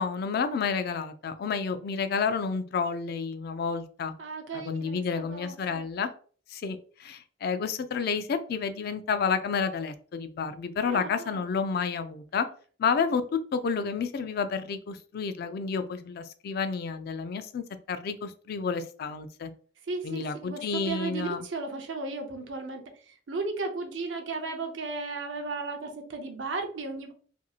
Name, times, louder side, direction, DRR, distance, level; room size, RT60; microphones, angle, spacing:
voice 1, 0.0-4.1 4.5-6.1 6.5-12.5 12.8-19.5 20.0-21.4, left 5 dB, 55° left, 10 dB, 0.3 m, -30 dB
voice 2, 4.2-5.8 10.8-11.4 19.9-27.1, right 3 dB, 85° right, 4 dB, 0.6 m, -35 dB
2.8 x 2.6 x 2.3 m, 0.43 s
head